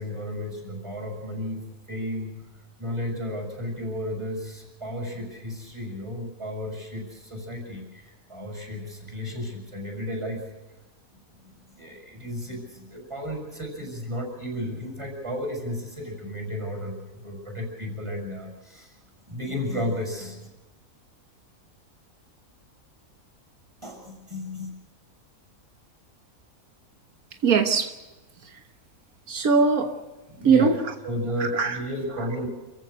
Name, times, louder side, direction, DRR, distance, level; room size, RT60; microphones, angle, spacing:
voice 1, 0.0-2.4 2.8-10.4 11.8-18.9 19.3-20.4 23.8-24.7 30.3-30.7 31.0-32.5, equal, 20° right, 1 dB, 6.6 m, -33 dB
voice 2, 27.4-27.9 29.3-29.9 30.4-30.8 31.4-31.8, right 5 dB, 85° right, 6 dB, 1.7 m, -20 dB
28.5 x 15.5 x 6.7 m, 1.1 s
omnidirectional pair, 1.5 m